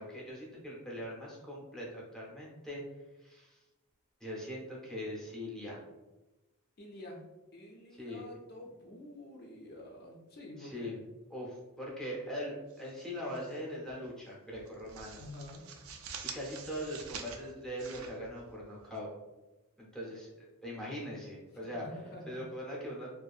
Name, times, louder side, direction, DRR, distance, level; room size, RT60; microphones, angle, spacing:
voice 1, 0.0-2.8 3.2-3.6 4.2-5.8 8.0-8.4 10.6-11.0 11.3-15.2 16.3-19.1 19.8-21.8 22.3-23.1, equal, 5° left, -5 dB, 0.7 m, -41 dB
voice 2, 6.8-7.2 7.5-10.9 15.2-15.6 21.6-22.4, left 1 dB, 50° left, 0 dB, 0.4 m, -48 dB
sound 1, 12.7-13.6 13.9-14.1 14.5-19.0, right 6 dB, 70° right, 0.3 m, -47 dB
2.7 x 2.5 x 2.4 m, 1.1 s
head